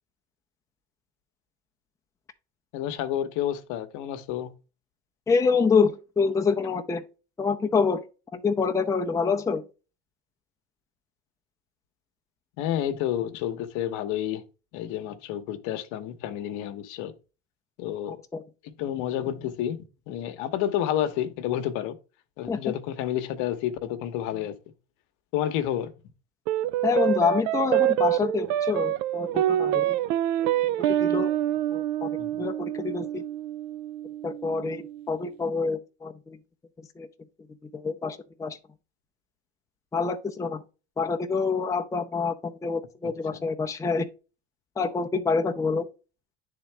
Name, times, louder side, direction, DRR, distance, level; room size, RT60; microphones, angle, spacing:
voice 1, 2.7-4.5 12.6-14.4 14.7-17.1 17.8-18.2 18.6-22.0 22.4-24.5 25.3-25.9 32.2-32.4 43.0-43.4, left 11 dB, 65° left, 0.9 m, -30 dB
voice 2, 5.3-7.0 7.4-8.0 8.3-9.6 18.1-18.4 22.5-22.6 26.8-30.0 31.0-31.3 31.7-33.2 34.2-36.4 37.0-37.1 37.7-38.6 39.9-40.6 41.0-44.1 44.8-45.9, left 5 dB, 10° left, 0.6 m, -26 dB
sound 1, 26.5-35.1, right 12 dB, 65° right, 0.5 m, -26 dB
9.5 x 3.7 x 3.3 m
supercardioid pair, 100°, 33 cm